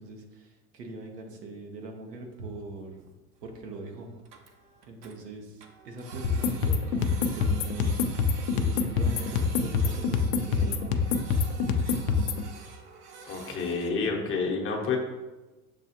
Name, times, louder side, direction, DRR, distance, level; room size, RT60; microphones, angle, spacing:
voice 1, 0.0-3.1 3.4-4.1 4.8-8.0 8.5-10.9, right 2 dB, 85° right, 2 dB, 0.9 m, -41 dB
Printer, 2.3-2.4 2.6-2.7 3.1-3.2 3.4-3.5 3.8-3.9 4.1-5.1 5.6-13.9, right 5 dB, 35° right, 0.6 m, -47 dB
sound 1, 6.2-12.4, left 5 dB, 45° left, 0.5 m, -26 dB
voice 2, 13.3-15.0, left 4 dB, 25° left, 0 dB, 0.8 m, -29 dB
6.7 x 2.3 x 2.8 m, 1.1 s
hypercardioid pair, 90°, 47 cm